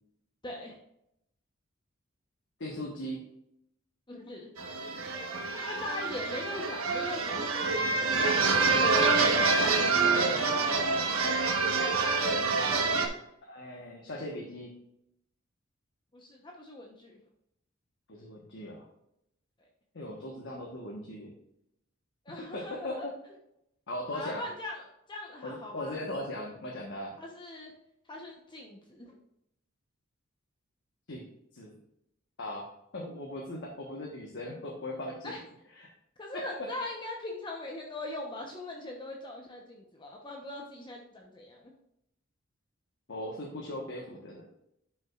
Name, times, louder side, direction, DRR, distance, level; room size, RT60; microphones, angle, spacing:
voice 1, 0.4-0.8 4.1-4.5 5.7-7.5 16.1-17.2 22.3-23.1 24.1-26.0 27.2-27.7 28.1-29.2 35.2-35.4 36.2-41.7, left 2 dB, 20° left, -1 dB, 1.0 m, -41 dB
voice 2, 2.6-3.2 8.9-10.5 13.4-14.7 18.1-18.9 19.9-21.3 22.5-23.0 23.9-24.4 25.4-27.1 31.1-31.2 31.5-31.8 32.4-32.7 32.9-35.4 35.8-35.9 43.1-44.5, left 1 dB, 60° left, -1 dB, 1.3 m, -39 dB
sound 1, 4.6-13.1, right 4 dB, 85° right, 1.3 m, -27 dB
10.5 x 6.1 x 2.5 m, 0.79 s
head